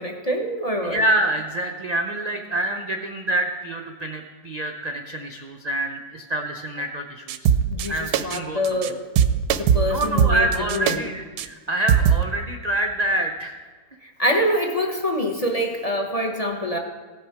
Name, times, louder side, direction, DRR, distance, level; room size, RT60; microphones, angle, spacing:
voice 1, 0.0-1.0 7.7-9.0 9.5-11.0 14.0-16.8, equal, 30° left, 2 dB, 0.8 m, -25 dB
voice 2, 0.8-7.5 7.9-8.6 8.8-8.9 9.9-13.6, right 1 dB, 60° right, 3 dB, 0.4 m, -26 dB
sound 1, 7.3-7.9 8.1-8.4 8.6-8.9 9.2-11.0 11.4-11.5 11.9-12.2, right 8 dB, 90° right, 1.2 m, -20 dB
16.5 x 6.4 x 4.7 m, 1.4 s
omnidirectional pair, 1.7 m